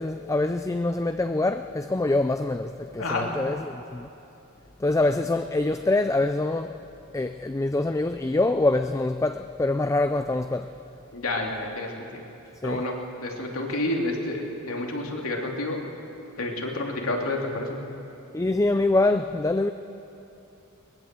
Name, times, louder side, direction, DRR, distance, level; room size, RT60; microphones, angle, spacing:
voice 1, 0.0-4.1 4.8-6.8 7.1-10.7 12.6-12.8 18.3-19.7, left 2 dB, 15° left, 9 dB, 0.4 m, -25 dB
voice 2, 3.0-3.3 11.1-12.2 12.6-15.8 16.4-17.8, left 2 dB, 70° left, 0 dB, 3.0 m, -29 dB
21.5 x 19.5 x 7.6 m, 2.9 s
head